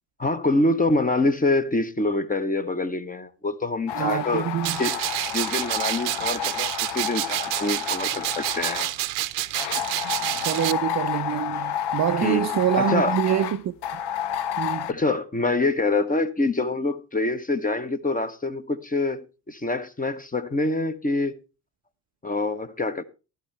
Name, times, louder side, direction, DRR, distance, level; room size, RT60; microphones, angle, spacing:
voice 1, 0.2-4.4 4.8-4.9 5.3-8.9 12.2-12.5 12.8-13.1 14.9-21.4 22.2-23.0, left 2 dB, 15° left, 1.1 m, -25 dB
sound 1, 3.9-8.9 9.5-14.9, left 10 dB, 55° left, 0.9 m, -30 dB
voice 2, 3.9-4.8 10.4-13.7 14.6-14.9, right 10 dB, 35° right, 0.6 m, -25 dB
sound 2, 4.6-10.7, right 18 dB, 75° right, 0.9 m, -28 dB
13.5 x 12.0 x 3.3 m
hypercardioid pair, 55°, 50 cm